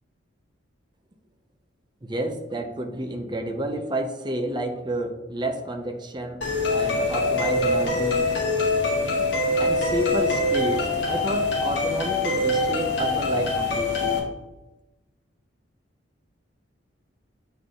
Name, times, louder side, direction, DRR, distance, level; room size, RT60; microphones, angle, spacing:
voice 1, 2.0-8.3 9.6-14.2, right 1 dB, 25° right, 5 dB, 0.6 m, -30 dB
sound 1, 6.4-14.2, left 2 dB, 65° left, 1.7 m, -24 dB
7.8 x 3.9 x 3.7 m, 1.0 s
head